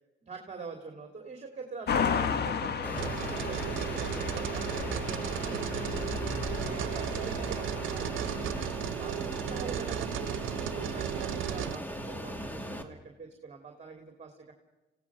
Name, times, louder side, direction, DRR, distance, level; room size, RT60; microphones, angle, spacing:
voice 1, 0.2-14.5, right 4 dB, 35° right, 4 dB, 3.0 m, -45 dB
sound 1, 1.9-8.7, left 6 dB, 55° left, 1.5 m, -34 dB
Fixed-wing aircraft airplane, 2.8-12.8, equal, 10° left, 2.4 m, -39 dB
sound 2, 3.0-11.8, right 13 dB, 80° right, 0.8 m, -35 dB
28.5 x 17.0 x 6.2 m, 1.1 s
cardioid pair, 90°, 20 cm